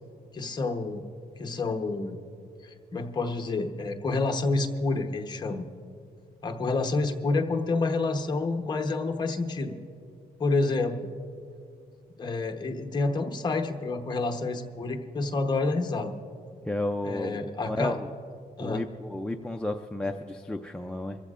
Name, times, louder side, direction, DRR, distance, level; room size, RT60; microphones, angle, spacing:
voice 1, 0.3-1.0 1.4-2.2 2.6-5.7 6.4-9.8 10.4-10.9 12.2-16.2 17.0-17.9 18.6-18.8, left 3 dB, 25° left, 3 dB, 0.9 m, -28 dB
voice 2, 16.7-18.1 18.6-21.2, left 1 dB, 5° left, 3 dB, 0.3 m, -32 dB
26.0 x 14.5 x 2.4 m, 2.4 s
wide cardioid pair, 180°, 17 cm